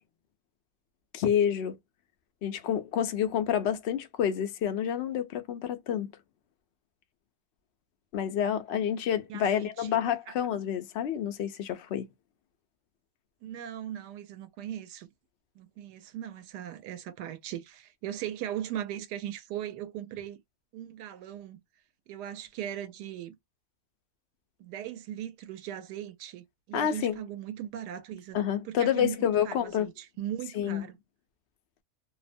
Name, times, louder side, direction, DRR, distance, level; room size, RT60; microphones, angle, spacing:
voice 1, 1.1-1.8 2.4-6.1 8.1-12.1 26.7-27.2 28.3-29.9 30.5-30.8, left 9 dB, 85° left, 0.5 m, -28 dB
voice 2, 9.3-10.0 10.3-10.4 13.4-15.1 15.6-20.4 20.7-21.6 22.1-23.4 24.6-28.4 28.6-31.0, right 11 dB, 85° right, 1.2 m, -39 dB
2.8 x 2.1 x 2.5 m
omnidirectional pair, 1.7 m